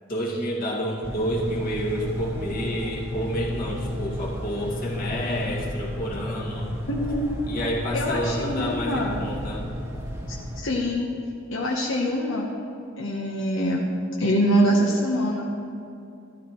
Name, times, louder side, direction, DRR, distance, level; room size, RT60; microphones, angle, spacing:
voice 1, 0.1-6.7 7.5-9.6, equal, 45° left, -3 dB, 1.8 m, -29 dB
sound 1, 1.0-10.6, left 1 dB, 15° right, 1.3 m, -33 dB
voice 2, 6.9-7.4 7.9-9.2 10.6-11.1 11.5-12.5 13.0-13.9 14.2-15.5, equal, 80° left, -1 dB, 0.9 m, -24 dB
12.5 x 12.0 x 3.0 m, 2.7 s
head